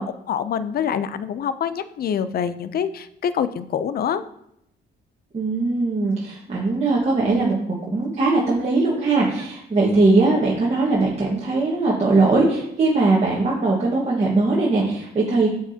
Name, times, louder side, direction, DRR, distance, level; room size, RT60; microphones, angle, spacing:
voice 1, 0.0-4.2, left 8 dB, 50° left, 13 dB, 0.5 m, -25 dB
voice 2, 5.3-7.6 7.9-15.5, right 3 dB, 35° right, -5 dB, 1.4 m, -20 dB
8.1 x 4.7 x 2.8 m, 0.77 s
cardioid pair, 90°, 20 cm